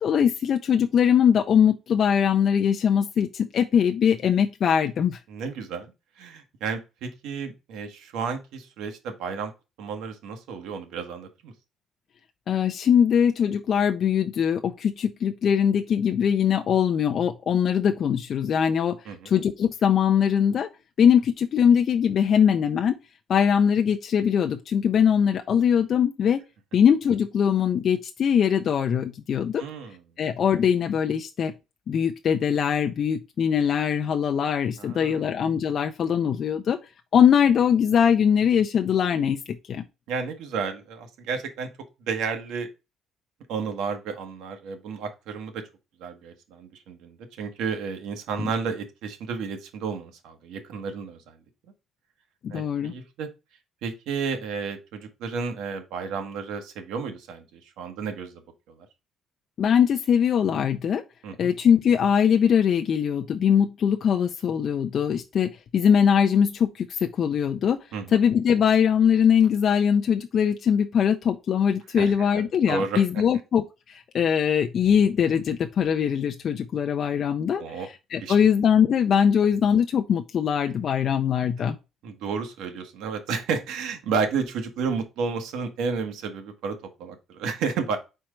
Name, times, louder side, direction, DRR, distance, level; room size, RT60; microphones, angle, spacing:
voice 1, 0.0-5.2 12.5-19.0 19.2-20.7 21.0-23.0 23.3-26.4 26.7-29.6 30.2-31.5 31.9-36.8 37.1-39.8 48.4-48.5 52.4-52.9 59.6-61.0 61.4-67.8 68.1-77.6 78.1-81.7, left 8 dB, 40° left, 0.5 m, -21 dB
voice 2, 5.3-5.9 6.2-9.5 9.8-11.5 19.0-19.3 29.6-30.0 34.8-35.3 40.1-41.7 42.1-42.7 43.5-45.6 46.0-51.4 52.5-53.3 53.8-58.9 61.2-61.5 67.9-68.2 72.0-73.0 77.6-77.9 78.2-78.4 82.0-88.0, right 5 dB, 80° right, 1.5 m, -32 dB
4.5 x 4.3 x 5.0 m
cardioid pair, 170°, 0 cm